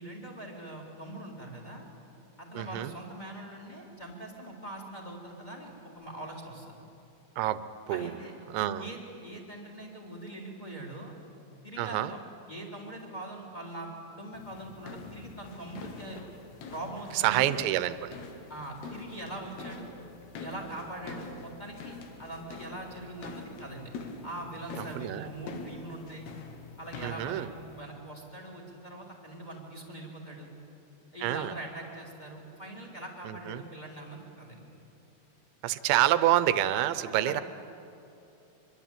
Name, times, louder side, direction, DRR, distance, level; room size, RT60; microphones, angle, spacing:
voice 1, 0.0-1.9 2.4-6.7 7.9-8.3 8.8-11.1 11.6-12.2 12.5-16.2 16.7-17.4 18.5-19.9 20.4-23.9 24.2-26.3 26.8-27.5 27.8-30.5 31.1-34.7 37.2-37.3, right 1 dB, 10° left, 0 dB, 3.0 m, -42 dB
voice 2, 2.5-2.9 7.4-8.2 8.5-8.9 11.8-12.1 17.1-18.1 24.8-25.3 27.0-27.5 31.2-31.5 33.3-33.6 35.6-37.4, right 13 dB, 80° right, 13 dB, 3.0 m, -28 dB
sound 1, 14.3-27.8, left 4 dB, 65° left, 3.6 m, -45 dB
25.0 x 23.0 x 9.1 m, 2.9 s
omnidirectional pair, 5.4 m